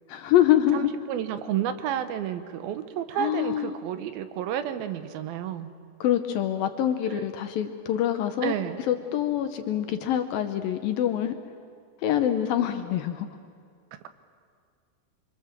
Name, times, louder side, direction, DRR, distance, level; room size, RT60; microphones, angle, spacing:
voice 1, 0.1-0.9 3.2-3.8 6.0-8.5 8.9-11.4 12.0-13.3, left 11 dB, 70° left, 7 dB, 2.4 m, -25 dB
voice 2, 0.7-5.7 7.1-7.2 8.4-8.8, right 10 dB, 70° right, 10 dB, 2.6 m, -31 dB
25.5 x 24.5 x 7.4 m, 2.1 s
omnidirectional pair, 4.8 m